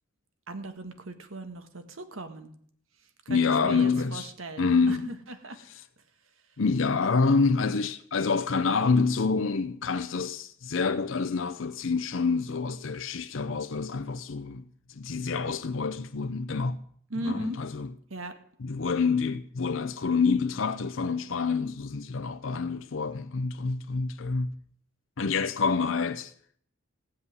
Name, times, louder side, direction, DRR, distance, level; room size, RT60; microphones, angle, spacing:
voice 1, 0.5-2.5 3.3-5.6 17.1-17.6 18.1-18.3, right 2 dB, 90° right, 1.7 m, -38 dB
voice 2, 3.3-4.3 4.6-5.1 6.6-16.8 17.2-17.9 18.6-24.6 25.2-26.3, left 4 dB, 75° left, 0.7 m, -27 dB
16.5 x 5.7 x 9.6 m
head